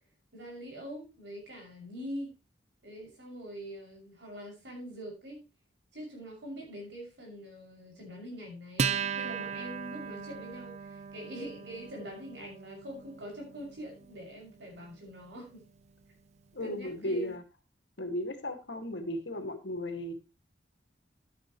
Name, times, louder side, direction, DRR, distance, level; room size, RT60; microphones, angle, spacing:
voice 1, 0.3-2.3 2.8-5.4 5.9-15.6 16.6-17.3, equal, 80° right, 0 dB, 6.6 m, -44 dB
Acoustic guitar, 8.8-15.6, right 6 dB, 40° right, 0.5 m, -38 dB
voice 2, 16.5-17.4 18.0-20.1, left 1 dB, 90° left, 5 dB, 2.3 m, -35 dB
12.5 x 9.6 x 3.1 m, 0.28 s
head